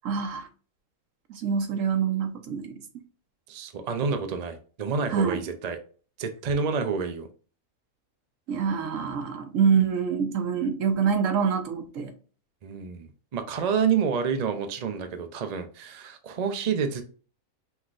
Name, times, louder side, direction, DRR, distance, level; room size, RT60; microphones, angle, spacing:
voice 1, 0.0-0.5 1.3-2.7 5.1-5.4 8.5-12.1, right 6 dB, 70° right, 1.1 m, -25 dB
voice 2, 3.5-5.8 6.2-7.3 12.6-17.0, right 6 dB, 50° right, 0.5 m, -28 dB
5.7 x 3.1 x 2.5 m
omnidirectional pair, 1.5 m